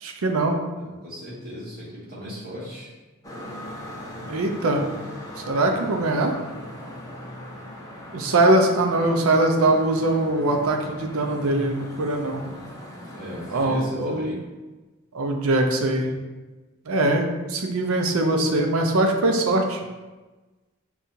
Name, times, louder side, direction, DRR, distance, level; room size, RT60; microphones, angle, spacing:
voice 1, 0.0-0.6 4.3-4.9 5.5-6.3 8.1-12.4 13.5-14.3 15.1-16.1 16.9-19.8, right 2 dB, 70° right, 3 dB, 0.5 m, -22 dB
voice 2, 0.8-2.9 13.1-14.4, equal, 45° right, -9 dB, 1.4 m, -38 dB
sound 1, 3.2-13.7, equal, 15° left, 0.6 m, -39 dB
5.3 x 2.3 x 2.7 m, 1.2 s
head